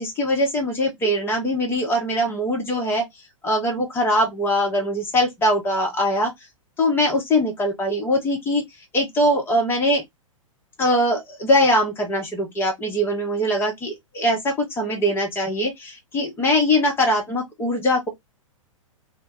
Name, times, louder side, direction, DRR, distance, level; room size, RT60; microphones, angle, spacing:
voice 1, 0.0-3.0 3.4-6.3 6.8-8.6 8.9-10.0 10.8-18.1, equal, 15° left, 0.8 m, -22 dB
2.2 x 2.1 x 3.5 m
figure-of-eight pair, 105°, 17 cm